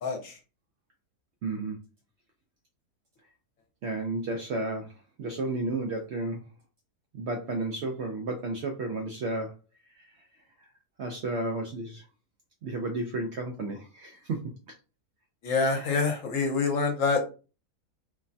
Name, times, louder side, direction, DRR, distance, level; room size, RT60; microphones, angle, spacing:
voice 1, 0.0-0.4 15.4-17.3, left 4 dB, 60° left, 4 dB, 1.1 m, -26 dB
voice 2, 1.4-1.7 3.8-4.9 5.2-6.4 7.1-9.5 11.0-12.0 12.6-14.4 15.8-15.9, right 2 dB, 75° right, 3 dB, 0.6 m, -32 dB
3.1 x 2.2 x 2.5 m, 0.33 s
omnidirectional pair, 1.7 m